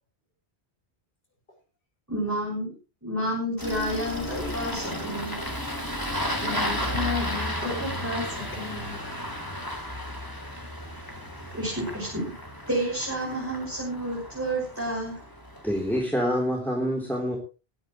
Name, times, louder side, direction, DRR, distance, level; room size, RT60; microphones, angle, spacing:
voice 1, 2.1-2.7 3.0-5.4 11.5-12.2 12.7-15.2, right 1 dB, 15° right, 6.4 m, -30 dB
Engine starting, 3.6-16.0, equal, 20° left, 3.5 m, -33 dB
voice 2, 6.4-9.0, left 4 dB, 65° left, 6.5 m, -33 dB
voice 3, 15.6-17.4, equal, ahead, 3.6 m, -26 dB
22.0 x 10.5 x 3.2 m
omnidirectional pair, 1.1 m